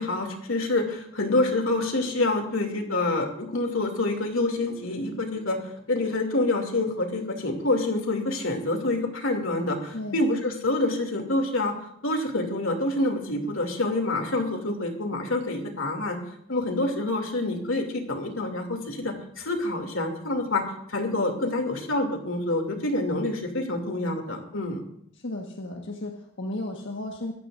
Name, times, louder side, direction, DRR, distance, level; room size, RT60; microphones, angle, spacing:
voice 1, 0.0-11.7 12.0-16.2 16.5-24.8, left 2 dB, 85° left, 3 dB, 2.7 m, -27 dB
voice 2, 9.9-10.2 25.1-27.3, left 1 dB, 65° left, 0 dB, 1.5 m, -34 dB
24.5 x 14.5 x 2.6 m, 0.70 s
head